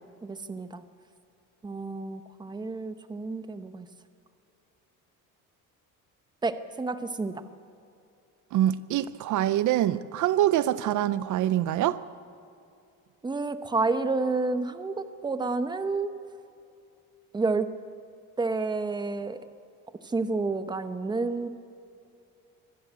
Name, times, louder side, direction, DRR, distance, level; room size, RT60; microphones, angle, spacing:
voice 1, 0.2-0.8 1.6-3.9 6.4-7.3 13.2-16.1 17.3-17.7 18.4-19.4 20.1-21.5, right 3 dB, 15° right, 11 dB, 0.8 m, -29 dB
voice 2, 8.5-12.0, right 12 dB, 65° right, 16 dB, 0.6 m, -25 dB
24.5 x 13.5 x 8.1 m, 2.6 s
cardioid pair, 145°, 32 cm